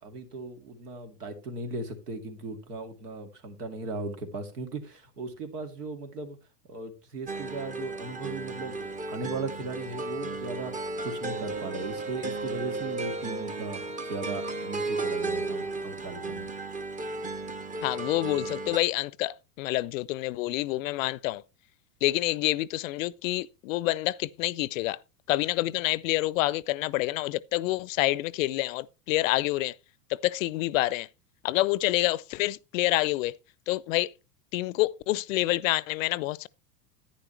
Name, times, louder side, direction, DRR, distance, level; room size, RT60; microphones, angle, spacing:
voice 1, 0.0-6.4 6.7-16.5, right 3 dB, 75° right, 2.5 m, -37 dB
sound 1, 7.3-18.8, right 2 dB, 15° right, 0.9 m, -34 dB
voice 2, 17.8-21.4 22.0-25.0 25.3-29.7 30.2-31.1 31.4-33.3 33.7-34.1 34.5-36.5, left 18 dB, 55° left, 0.6 m, -27 dB
10.5 x 10.0 x 3.2 m
hypercardioid pair, 95°, 47 cm